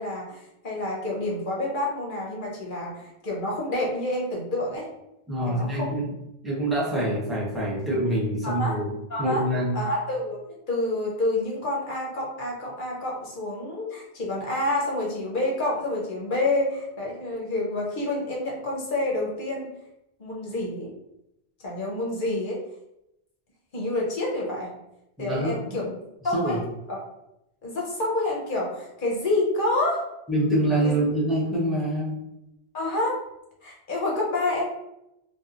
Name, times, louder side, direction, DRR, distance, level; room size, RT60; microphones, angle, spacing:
voice 1, 0.0-4.9 5.4-5.9 8.4-8.8 9.1-9.4 9.7-19.7 20.2-20.9 21.6-22.6 23.7-24.7 25.2-25.9 26.2-26.6 26.9-27.0 27.6-30.1 30.8-30.9 32.7-33.2 33.6-34.7, left 2 dB, 55° left, -3 dB, 0.9 m, -28 dB
voice 2, 5.3-6.1 6.4-8.9 9.2-9.8 25.2-25.9 26.3-26.6 30.3-32.2, right 1 dB, ahead, -7 dB, 0.7 m, -25 dB
2.8 x 2.3 x 2.4 m, 0.86 s
omnidirectional pair, 1.1 m